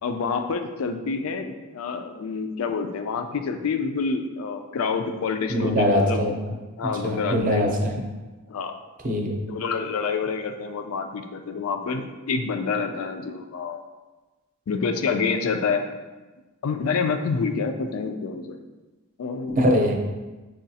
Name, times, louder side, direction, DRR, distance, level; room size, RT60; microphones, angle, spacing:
voice 1, 0.0-6.2 6.8-7.6 8.5-8.7 9.5-13.9 14.7-15.8 16.6-18.6 19.2-19.8, left 5 dB, 90° left, 7 dB, 0.4 m, -27 dB
voice 2, 5.5-6.3 6.8-8.0 9.0-9.4 19.5-19.9, equal, 40° right, 1 dB, 0.6 m, -22 dB
6.2 x 2.3 x 2.7 m, 1.2 s
head